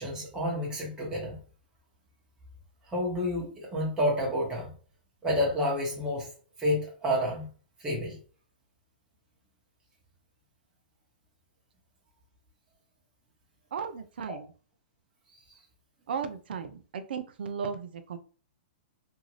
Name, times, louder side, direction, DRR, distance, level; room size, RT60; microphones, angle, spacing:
voice 1, 0.0-1.4 2.9-4.7 5.2-6.3 6.6-7.5 7.8-8.2 15.5-15.6, left 1 dB, 15° right, -4 dB, 1.0 m, -29 dB
voice 2, 13.7-14.5 16.1-18.2, right 6 dB, 75° right, 8 dB, 0.4 m, -35 dB
2.6 x 2.4 x 3.1 m, 0.39 s
hypercardioid pair, 130°, 5 cm